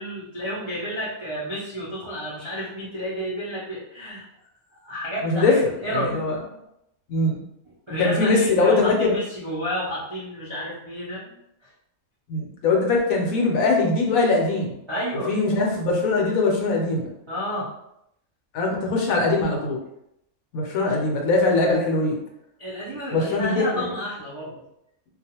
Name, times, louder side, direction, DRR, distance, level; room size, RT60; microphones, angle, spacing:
voice 1, 0.0-4.2 4.8-6.2 7.9-11.3 11.6-11.7 14.9-15.3 17.3-17.7 20.9-21.0 22.6-24.6, equal, 45° right, -9 dB, 0.3 m, -31 dB
voice 2, 5.2-6.3 7.1-7.4 8.0-9.1 12.3-14.8 15.3-17.1 18.5-19.8 20.5-22.2 23.1-23.9, left 3 dB, 75° left, 0 dB, 1.0 m, -21 dB
2.4 x 2.3 x 2.8 m, 0.80 s
omnidirectional pair, 1.5 m